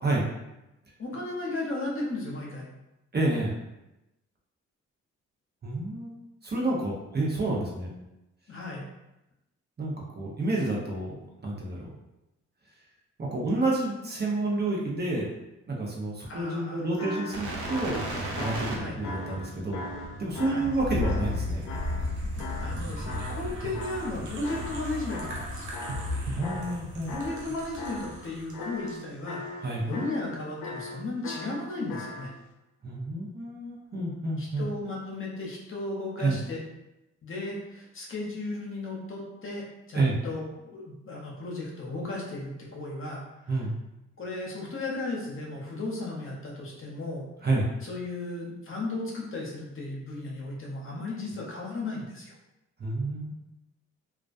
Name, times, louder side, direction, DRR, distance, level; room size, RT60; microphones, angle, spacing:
voice 1, 1.0-2.7 8.5-8.8 16.3-16.9 18.7-19.0 20.4-20.7 22.3-25.7 27.1-29.4 29.8-32.3 34.4-36.6 37.2-43.6 44.2-47.2 47.8-52.3, left 2 dB, 40° left, -3 dB, 0.8 m, -35 dB
voice 2, 3.1-3.6 5.6-6.1 6.4-7.9 9.8-12.0 13.2-15.3 15.7-18.0 18.4-19.8 20.2-21.6 23.6-23.7 26.4-27.1 29.6-29.8 32.8-34.6 36.2-36.3 39.9-40.2 43.5-43.7 47.4-47.7 52.8-53.3, right 2 dB, 30° right, -3 dB, 0.7 m, -29 dB
sound 1, 17.0-22.8 23.1-26.2 26.4-27.5 27.8-28.2 28.5-30.3 30.6-32.3, left 2 dB, 75° left, 0.5 m, -39 dB
sound 2, 17.3-28.5 28.9-29.0, left 1 dB, 70° right, 0.6 m, -35 dB
2.3 x 2.1 x 2.5 m, 0.93 s
supercardioid pair, 55°, 31 cm